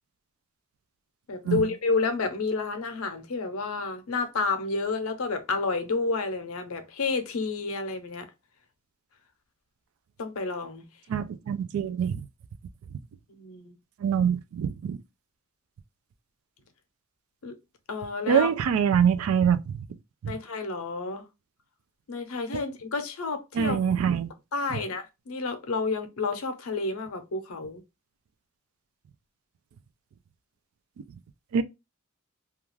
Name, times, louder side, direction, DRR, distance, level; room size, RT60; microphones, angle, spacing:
voice 1, 1.3-8.3 10.2-10.9 13.3-13.7 17.4-17.5 17.9-18.5 20.3-21.2 22.1-23.8 24.5-27.8, left 3 dB, 90° left, 0.6 m, -30 dB
voice 2, 11.1-12.2 14.0-15.0 18.3-19.8 20.2-20.3 22.5-22.6 23.5-24.3 31.5-31.6, right 7 dB, 80° right, 0.3 m, -24 dB
2.4 x 2.3 x 3.1 m
head